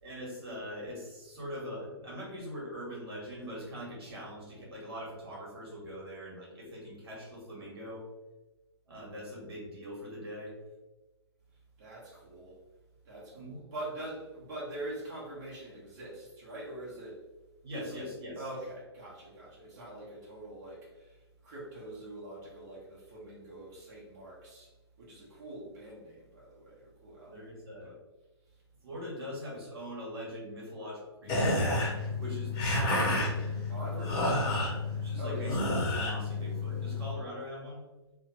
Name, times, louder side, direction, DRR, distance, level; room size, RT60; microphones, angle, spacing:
voice 1, 0.0-8.1 8.9-10.6 13.3-13.6 17.6-18.4 27.3-27.9 28.8-31.6 32.1-33.3 34.9-37.8, equal, 60° right, -4 dB, 1.4 m, -42 dB
voice 2, 11.8-12.5 13.0-17.2 17.7-18.1 18.3-21.2 21.4-24.7 25.0-27.5 27.8-27.9 33.7-34.8 35.2-35.6, right 1 dB, 40° right, -6 dB, 1.1 m, -44 dB
sound 1, 31.3-37.1, left 2 dB, 30° left, 0.8 m, -30 dB
2.8 x 2.2 x 2.9 m, 1.1 s
figure-of-eight pair, 120°, 14 cm